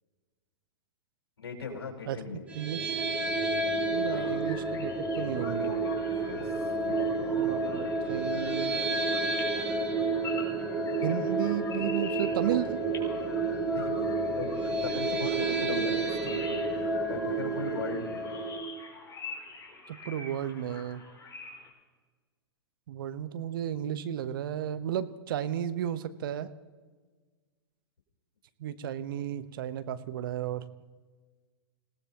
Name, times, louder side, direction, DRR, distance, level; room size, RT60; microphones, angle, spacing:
voice 1, 1.4-2.4 4.0-4.4 6.2-7.0 13.6-16.6 17.1-18.2, left 4 dB, 70° left, 0 dB, 5.0 m, -39 dB
sound 1, 2.5-18.6, right 3 dB, 10° right, 3.2 m, -30 dB
voice 2, 2.5-3.2 3.9-5.7 6.9-8.8 11.0-12.8 19.9-21.0 22.9-26.5 28.6-30.7, right 10 dB, 55° right, 13 dB, 1.0 m, -34 dB
sound 2, 4.1-21.7, left 4 dB, 25° left, 4.5 m, -46 dB
27.0 x 18.0 x 2.9 m, 1.4 s
figure-of-eight pair, 105°, 13 cm